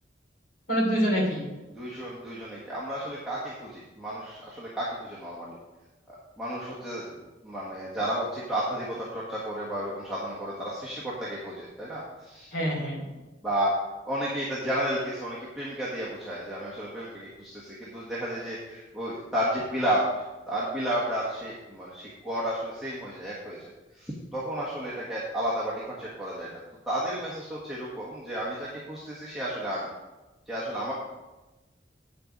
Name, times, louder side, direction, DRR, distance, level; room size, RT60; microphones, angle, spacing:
voice 1, 0.7-1.5 12.5-13.0, equal, 50° left, -3 dB, 3.3 m, -25 dB
voice 2, 1.7-5.5 6.1-7.1 7.4-12.5 13.4-13.7 14.1-26.5 26.9-29.9 30.5-30.9, right 1 dB, ahead, -9 dB, 1.5 m, -32 dB
8.9 x 6.8 x 5.2 m, 1.1 s
head